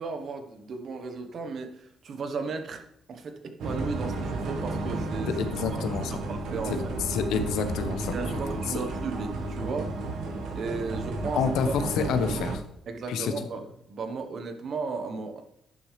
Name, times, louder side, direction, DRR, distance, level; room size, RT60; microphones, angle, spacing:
voice 1, 0.0-6.9 8.1-9.9 10.5-11.7 12.9-15.4, right 4 dB, 55° right, 7 dB, 1.2 m, -35 dB
sound 1, 3.6-12.6, right 2 dB, 75° right, 1.5 m, -32 dB
voice 2, 5.4-6.2 7.1-8.1 8.7-8.8 11.3-12.6 13.1-13.3, left 6 dB, 85° left, 8 dB, 1.0 m, -28 dB
10.5 x 6.3 x 3.3 m, 0.76 s
cardioid pair, 90°, 0 cm